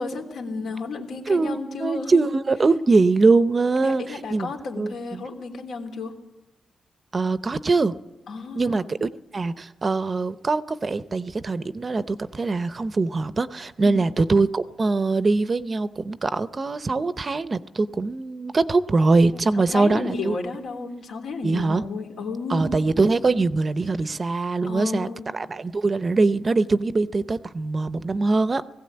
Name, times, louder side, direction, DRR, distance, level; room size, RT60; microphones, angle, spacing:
voice 1, 0.0-2.2 3.8-6.1 8.3-8.8 13.8-14.0 19.3-22.7 24.6-25.3, left 4 dB, 85° left, 3 dB, 3.1 m, -32 dB
voice 2, 1.3-5.2 7.1-7.9 8.5-20.4 21.4-21.8 22.5-28.6, right 3 dB, 30° right, 14 dB, 0.6 m, -22 dB
19.5 x 16.5 x 8.7 m, 1.0 s
wide cardioid pair, 150°, 0 cm